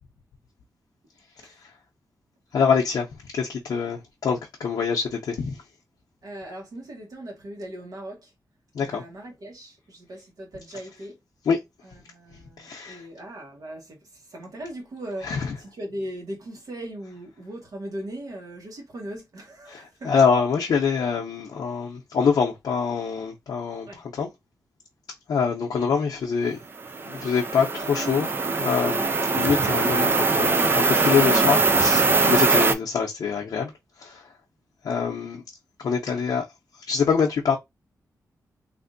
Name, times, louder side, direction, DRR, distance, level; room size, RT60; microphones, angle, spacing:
voice 1, 2.5-5.6 8.7-9.0 11.5-11.6 12.6-13.0 15.2-15.5 19.7-24.3 25.3-26.6 27.0-29.1 29.4-33.7 34.0-34.3 34.8-35.4 35.8-36.5 36.9-37.6, left 6 dB, 85° left, 0.6 m, -25 dB
voice 2, 6.2-8.3 8.8-11.2 11.8-20.1 23.8-24.0, right 1 dB, 65° right, 1.2 m, -39 dB
sound 1, 26.8-32.7, right 3 dB, 35° right, 0.4 m, -21 dB
3.4 x 2.5 x 2.6 m
wide cardioid pair, 135°, 7 cm